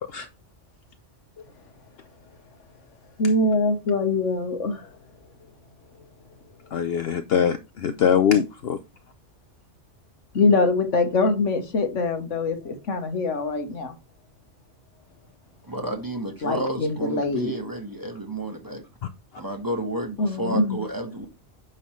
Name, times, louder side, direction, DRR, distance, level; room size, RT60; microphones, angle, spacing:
voice 1, 3.2-4.9 10.3-13.9 16.4-17.5 20.2-20.8, left 3 dB, 85° left, 1.5 m, -23 dB
voice 2, 6.7-8.8, left 8 dB, 60° left, 0.8 m, -22 dB
voice 3, 15.6-18.9 19.4-21.3, right 1 dB, 20° right, 1.4 m, -31 dB
9.1 x 5.7 x 3.2 m
omnidirectional pair, 1.2 m